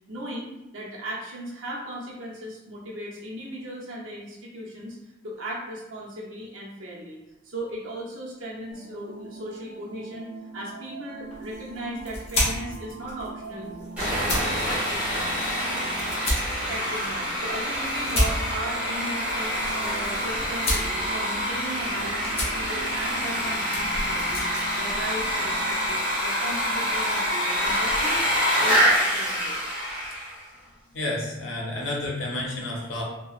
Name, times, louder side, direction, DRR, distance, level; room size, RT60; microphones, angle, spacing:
voice 1, 0.1-5.0 5.2-10.3 10.5-13.7 13.9-15.3 16.4-24.4 24.8-28.2 28.6-29.6, right 1 dB, 85° right, -4 dB, 0.8 m, -37 dB
sound 1, 8.7-27.9, right 3 dB, 60° right, 0.5 m, -42 dB
sound 2, 11.2-25.8, left 1 dB, 30° left, 0.7 m, -33 dB
Sawing, 14.0-30.4, equal, 5° right, 0.9 m, -26 dB
voice 2, 30.9-33.0, left 2 dB, 80° left, -2 dB, 0.7 m, -30 dB
2.8 x 2.2 x 2.4 m, 0.95 s
head